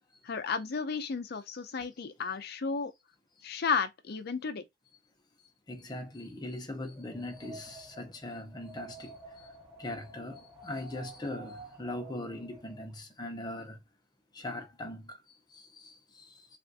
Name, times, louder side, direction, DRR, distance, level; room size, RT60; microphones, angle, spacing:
voice 1, 0.2-2.9 3.4-4.6, left 5 dB, 60° left, 0.5 m, -33 dB
voice 2, 5.7-9.1 9.8-13.8 14.3-15.2 15.5-16.0, left 1 dB, 20° left, 0.7 m, -40 dB
Wind, 6.9-12.9, right 2 dB, 15° right, 1.4 m, -50 dB
3.3 x 2.5 x 2.6 m
head